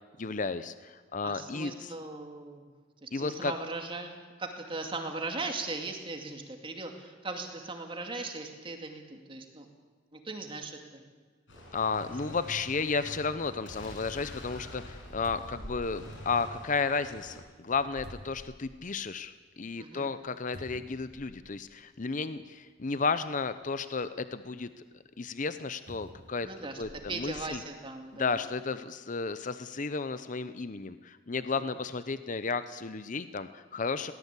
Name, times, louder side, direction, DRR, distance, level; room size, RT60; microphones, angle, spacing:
voice 1, 0.2-1.9 3.1-3.5 11.7-24.7 25.2-26.5 26.8-27.6 28.1-34.1, left 4 dB, 40° left, 12 dB, 0.7 m, -33 dB
voice 2, 1.2-2.7 3.0-4.1 4.4-9.7 10.1-11.0 12.2-12.3 19.8-20.1 26.4-26.8 27.1-28.3, right 3 dB, 25° right, 4 dB, 2.3 m, -38 dB
Gunshot gunfire, 11.5-17.4, equal, 80° left, 6.5 m, -46 dB
sound 1, 15.2-16.9 17.6-19.0 19.5-19.6 20.5-21.7 22.6-22.7 25.9-27.5 28.2-28.3, equal, 60° right, 2.8 m, -49 dB
22.0 x 18.0 x 8.3 m, 1.4 s
head